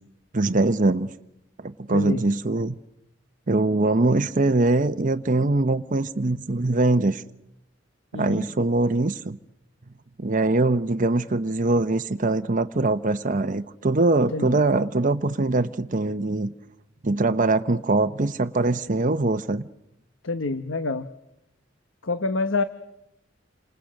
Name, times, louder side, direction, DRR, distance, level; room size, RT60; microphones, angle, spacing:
voice 1, 0.3-1.1 1.6-2.8 3.5-7.2 8.1-9.4 10.2-16.5 17.0-19.7, right 2 dB, 45° right, 0.9 m, -22 dB
voice 2, 1.9-2.2 8.1-8.5 14.3-14.4 20.2-21.1 22.0-22.6, left 3 dB, 85° left, 1.3 m, -26 dB
30.0 x 27.5 x 6.5 m
head